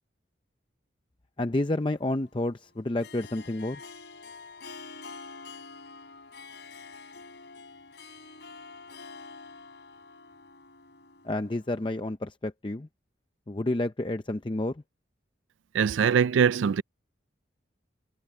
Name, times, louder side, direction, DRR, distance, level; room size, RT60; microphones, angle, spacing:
voice 1, 1.4-3.8 11.2-12.9 13.5-14.8, left 1 dB, 25° left, 0.6 m, -30 dB
Harp, 1.6-12.0, left 4 dB, 60° left, 3.6 m, -47 dB
voice 2, 15.7-16.8, right 7 dB, 75° right, 0.4 m, -22 dB
head